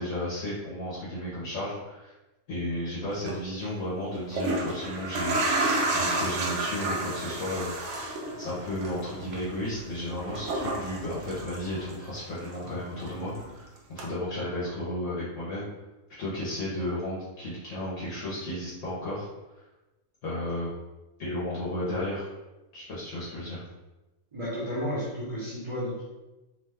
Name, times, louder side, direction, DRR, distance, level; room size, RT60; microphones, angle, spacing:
voice 1, 0.0-2.1 2.5-7.7 8.4-15.7 16.2-19.3 20.2-20.7 21.2-22.3 22.7-23.6, left 1 dB, 65° left, -8 dB, 1.0 m, -33 dB
sound 1, 3.1-3.3 4.1-12.2 12.5-13.5 14.0-14.1, right 2 dB, 65° right, 0.8 m, -31 dB
voice 2, 24.3-26.0, equal, 30° right, -9 dB, 0.6 m, -32 dB
2.7 x 2.2 x 3.3 m, 1.1 s
omnidirectional pair, 1.4 m